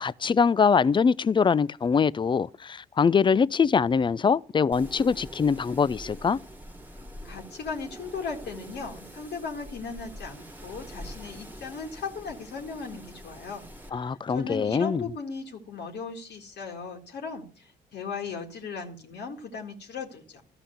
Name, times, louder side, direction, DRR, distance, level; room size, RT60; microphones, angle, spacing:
voice 1, 0.0-6.4 13.9-15.1, left 6 dB, 25° left, 0.4 m, -23 dB
Wind, 4.7-13.9, equal, 10° right, 1.6 m, -44 dB
voice 2, 7.0-20.4, left 5 dB, 60° left, 1.9 m, -37 dB
12.5 x 5.7 x 6.9 m
hypercardioid pair, 50°, 19 cm